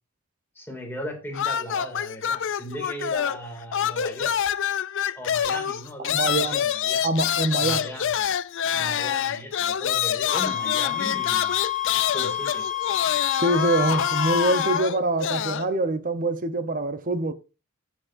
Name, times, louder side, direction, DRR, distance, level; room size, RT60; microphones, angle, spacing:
voice 1, 0.5-4.4 5.2-7.1 7.6-8.1 8.7-11.6 12.1-12.7, equal, 10° left, 2.4 m, -37 dB
sound 1, 1.3-3.5 3.7-15.7, left 9 dB, 60° left, 0.4 m, -26 dB
voice 2, 6.0-6.6 7.0-7.9 13.3-17.3, right 2 dB, 40° right, 0.8 m, -25 dB
sound 2, 10.3-14.8, left 11 dB, 35° left, 1.2 m, -28 dB
14.5 x 6.2 x 2.6 m
head